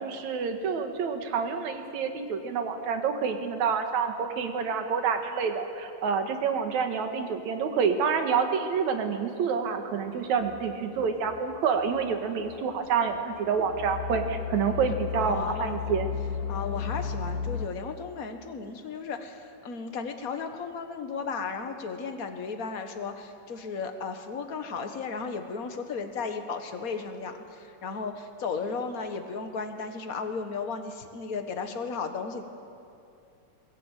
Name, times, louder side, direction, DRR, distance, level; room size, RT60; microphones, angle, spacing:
voice 1, 0.0-16.1, right 6 dB, 65° right, 6 dB, 2.8 m, -28 dB
sound 1, 10.4-17.7, left 6 dB, 70° left, 1.9 m, -35 dB
voice 2, 15.1-15.8 16.5-32.4, left 5 dB, 50° left, 6 dB, 1.0 m, -35 dB
21.5 x 20.0 x 9.1 m, 2.7 s
omnidirectional pair, 3.6 m